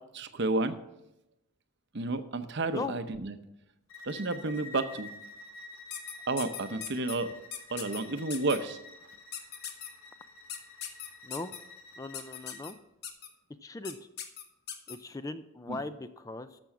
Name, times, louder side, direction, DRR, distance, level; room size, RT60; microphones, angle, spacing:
voice 1, 0.1-0.7 1.9-3.4 4.0-5.1 6.3-7.3 7.7-8.8 15.7-15.8, right 2 dB, 55° right, 10 dB, 0.8 m, -31 dB
Bowed string instrument, 3.9-12.7, left 2 dB, 80° left, 1.6 m, -49 dB
sound 1, 5.9-7.2 7.5-8.0 8.3-8.6 9.3-9.9 10.5-11.6 12.1-12.7 13.0-13.3 13.8-13.9 14.2-15.0, left 9 dB, 50° left, 1.2 m, -39 dB
voice 2, 11.2-11.6 12.0-12.8 13.6-14.0 14.9-16.6, left 2 dB, 15° left, 11 dB, 0.4 m, -39 dB
13.5 x 6.2 x 5.9 m, 0.90 s
head